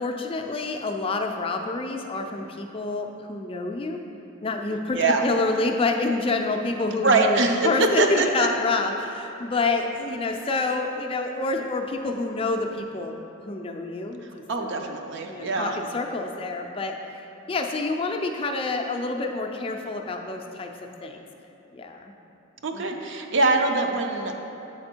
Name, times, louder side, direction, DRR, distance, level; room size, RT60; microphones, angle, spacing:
voice 1, 0.0-4.0 4.4-7.4 7.6-14.7 15.3-20.7 21.0-21.2 21.7-22.1 22.7-23.0, left 3 dB, 25° left, 3 dB, 0.4 m, -28 dB
voice 2, 4.9-5.2 7.0-7.7 8.0-8.5 14.5-15.8 22.6-24.3, right 3 dB, 60° right, 3 dB, 0.5 m, -23 dB
7.9 x 4.2 x 4.4 m, 2.9 s
head